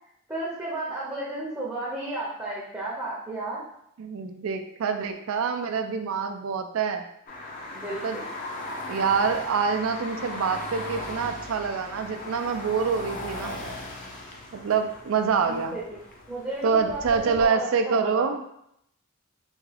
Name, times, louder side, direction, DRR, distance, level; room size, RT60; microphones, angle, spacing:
voice 1, 0.3-3.6 7.7-8.3 15.5-16.0 16.3-18.3, right 2 dB, 10° right, -6 dB, 0.6 m, -33 dB
voice 2, 4.0-7.0 8.0-8.2 8.9-13.6 14.5-15.8 16.6-18.4, right 5 dB, 75° right, 7 dB, 0.4 m, -26 dB
sound 1, 7.3-17.5, left 1 dB, 40° left, 0.5 m, -38 dB
3.5 x 2.3 x 3.3 m, 0.74 s
head